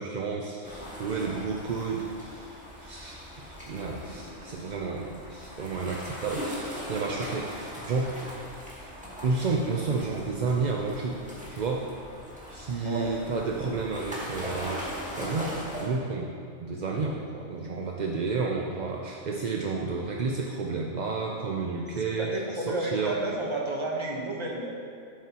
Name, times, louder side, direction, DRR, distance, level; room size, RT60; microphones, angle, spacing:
voice 1, 0.0-8.2 9.2-11.2 11.5-11.9 12.5-16.3 16.6-22.3 22.7-23.2, right 4 dB, 55° right, -1 dB, 0.5 m, -31 dB
sound 1, 0.6-15.8, equal, 5° right, 1.7 m, -40 dB
voice 2, 12.8-13.1 21.9-24.7, right 2 dB, 25° right, -1 dB, 1.0 m, -31 dB
11.0 x 8.3 x 2.9 m, 2.2 s
omnidirectional pair, 1.4 m